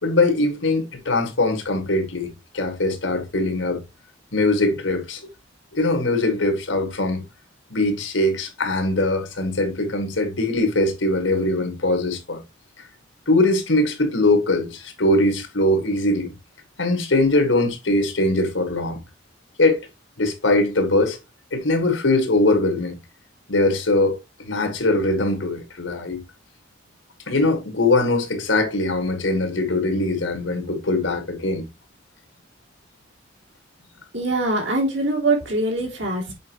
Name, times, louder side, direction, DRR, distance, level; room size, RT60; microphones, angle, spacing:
voice 1, 0.0-3.8 4.3-5.2 5.7-7.2 7.7-12.4 13.3-16.3 16.8-19.0 19.6-19.8 20.2-21.2 21.5-22.9 23.5-24.2 24.4-26.2 27.3-31.7, left 2 dB, 80° left, 1.9 m, -21 dB
voice 2, 34.1-36.3, right 2 dB, 70° right, 2.9 m, -23 dB
7.5 x 5.1 x 3.0 m
head